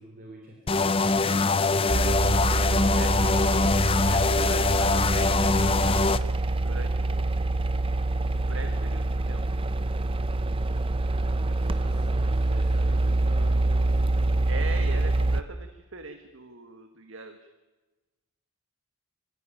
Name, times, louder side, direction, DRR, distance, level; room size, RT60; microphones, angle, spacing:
voice 1, 0.0-2.9 11.0-14.5, right 1 dB, 40° right, 1 dB, 3.5 m, -46 dB
sound 1, 0.7-6.2, left 3 dB, 25° left, 0.6 m, -23 dB
sound 2, 1.9-15.4, right 2 dB, 25° right, 0.7 m, -25 dB
voice 2, 2.9-3.4 4.1-6.0 6.6-7.5 8.3-9.4 14.5-17.4, right 3 dB, 65° right, 7 dB, 1.5 m, -41 dB
24.5 x 15.0 x 9.0 m, 1.2 s
head